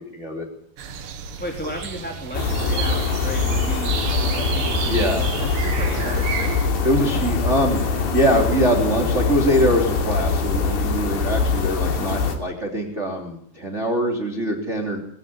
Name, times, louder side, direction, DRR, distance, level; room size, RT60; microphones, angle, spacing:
voice 1, 0.1-0.5 4.9-5.2 6.8-15.0, equal, 20° right, 2 dB, 3.1 m, -23 dB
sound 1, 0.8-6.7, right 7 dB, 85° right, 4.1 m, -32 dB
voice 2, 1.4-4.0 4.3-6.6 6.9-7.3 11.5-12.1, equal, 5° left, 1 dB, 2.7 m, -35 dB
sound 2, 2.3-12.4, left 4 dB, 90° left, 5.3 m, -23 dB
sound 3, 2.8-10.1, left 1 dB, 50° left, 9.6 m, -43 dB
22.5 x 15.0 x 9.8 m, 0.66 s
omnidirectional pair, 4.8 m